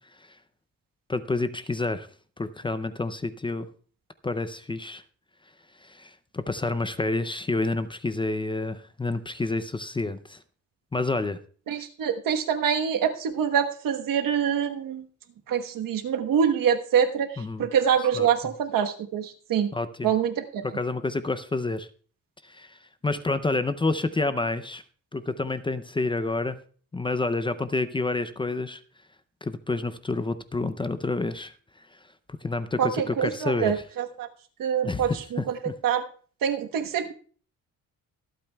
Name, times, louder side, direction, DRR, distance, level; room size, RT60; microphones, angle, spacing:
voice 1, 1.1-2.1 2.4-3.7 4.2-5.0 5.8-10.4 10.9-11.4 17.4-17.7 18.1-18.5 19.7-20.1 20.6-21.9 22.4-24.8 25.1-26.6 26.9-28.8 29.4-31.5 31.9-32.0 32.4-33.8 34.8-35.7, left 3 dB, 15° left, 12 dB, 0.4 m, -29 dB
voice 2, 11.7-15.0 15.5-19.7 20.0-20.6 32.8-34.3 34.6-35.5 35.8-36.0 36.4-37.1, right 8 dB, 85° right, 6 dB, 1.2 m, -25 dB
24.0 x 8.6 x 2.3 m, 0.43 s
cardioid pair, 145°, 33 cm